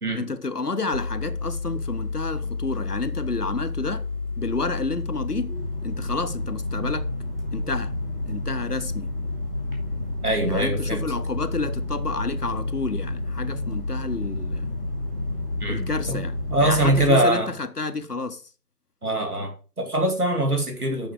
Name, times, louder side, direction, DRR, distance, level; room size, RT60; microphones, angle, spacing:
voice 1, 0.1-4.0 4.4-5.5 5.8-7.1 7.5-8.0 8.3-9.1 10.4-14.7 15.7-18.4, left 3 dB, 65° left, 0.9 m, -30 dB
sound 1, 0.9-17.1, left 2 dB, 35° right, 2.4 m, -30 dB
voice 2, 10.2-11.0 15.6-16.2 16.5-17.5 19.0-21.1, right 1 dB, 60° right, 2.6 m, -23 dB
8.1 x 5.5 x 4.7 m
figure-of-eight pair, 170°, 50 cm